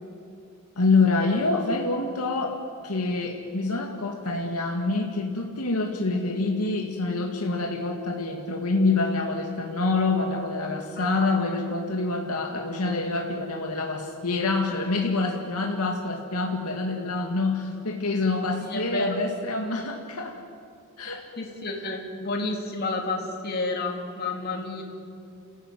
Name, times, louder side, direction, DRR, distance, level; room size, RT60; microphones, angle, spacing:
voice 1, 0.8-20.4 21.0-21.3 24.3-24.6, left 3 dB, 90° left, 1 dB, 2.1 m, -26 dB
voice 2, 11.0-11.3 18.7-19.2 21.4-24.8, left 2 dB, 45° left, 1 dB, 2.9 m, -30 dB
29.5 x 15.5 x 9.4 m, 2.4 s
head